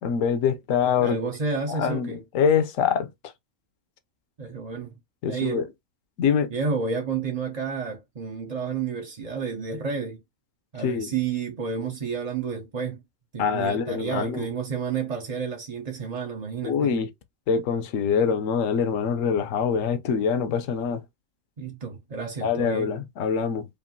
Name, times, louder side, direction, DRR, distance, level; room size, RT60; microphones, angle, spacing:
voice 1, 0.0-1.2 1.7-3.1 5.2-5.7 6.2-6.5 10.8-11.1 13.4-14.5 16.6-17.1 17.5-21.0 22.4-23.7, left 6 dB, 70° left, 1.1 m, -24 dB
voice 2, 1.0-2.2 4.4-4.9 5.3-5.6 6.5-10.2 10.7-13.0 13.3-16.9 21.6-23.0, right 5 dB, 40° right, 0.5 m, -30 dB
5.2 x 2.5 x 2.7 m
omnidirectional pair, 1.5 m